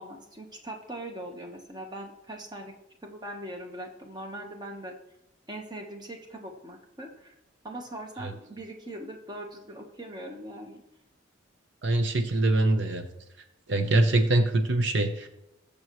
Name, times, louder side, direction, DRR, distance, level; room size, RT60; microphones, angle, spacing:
voice 1, 0.0-2.7 3.0-4.9 5.5-7.4 7.6-10.8, right 1 dB, 20° right, 3 dB, 1.2 m, -41 dB
voice 2, 11.8-13.1 13.7-15.3, right 2 dB, 65° right, 7 dB, 0.9 m, -23 dB
21.0 x 7.0 x 3.1 m, 0.88 s
head